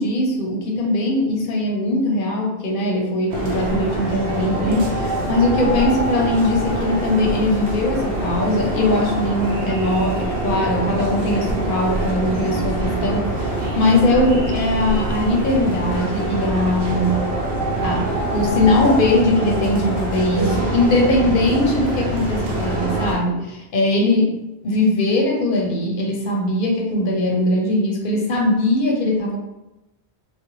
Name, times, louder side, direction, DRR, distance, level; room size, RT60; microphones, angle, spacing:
voice 1, 0.0-17.2 17.8-24.4 24.6-29.4, left 1 dB, 60° left, 0 dB, 0.7 m, -20 dB
sound 1, 3.3-23.2, right 1 dB, 75° right, 0.9 m, -24 dB
2.4 x 2.1 x 3.0 m, 0.95 s
omnidirectional pair, 1.1 m